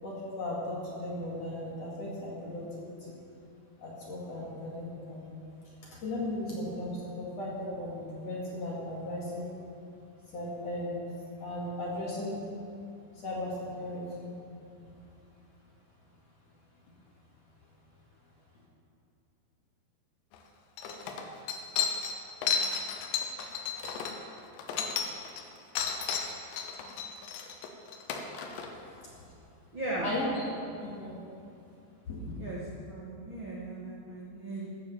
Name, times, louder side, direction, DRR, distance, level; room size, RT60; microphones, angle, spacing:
voice 1, 0.0-3.2 3.8-5.3 5.7-9.5 10.3-11.0 11.4-12.4 13.1-14.4 28.9-29.2 30.0-30.4 30.8-31.2 32.1-32.4, left 1 dB, 45° left, -5 dB, 2.4 m, -36 dB
sound 1, 20.3-20.4 20.8-25.4 25.8-28.7, left 7 dB, 80° left, 3.2 m, -33 dB
voice 2, 29.7-30.1 32.4-32.6 32.9-34.7, right 2 dB, 80° right, -5 dB, 1.1 m, -37 dB
15.0 x 9.2 x 7.1 m, 2.6 s
omnidirectional pair, 5.3 m